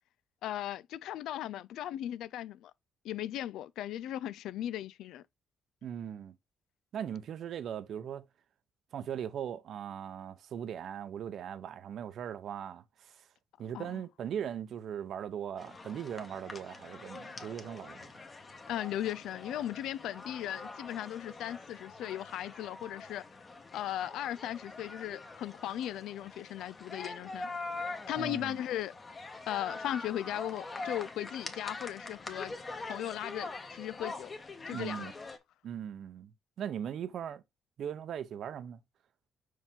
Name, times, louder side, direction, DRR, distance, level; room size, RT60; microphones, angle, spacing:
voice 1, 0.4-2.7 3.0-5.2 13.7-14.0 18.7-23.2 23.7-27.5 28.1-28.9 29.5-32.5 32.9-34.3 34.7-35.1, left 12 dB, 85° left, 0.3 m, -37 dB
voice 2, 5.8-6.3 6.9-8.3 8.9-13.2 13.6-18.1 28.2-28.6 34.7-35.1 35.6-36.3 36.6-37.4 37.8-38.8, right 9 dB, 65° right, 0.7 m, -39 dB
sound 1, 15.6-35.4, left 3 dB, 35° left, 1.3 m, -44 dB
5.6 x 4.7 x 3.7 m
cardioid pair, 90°, 0 cm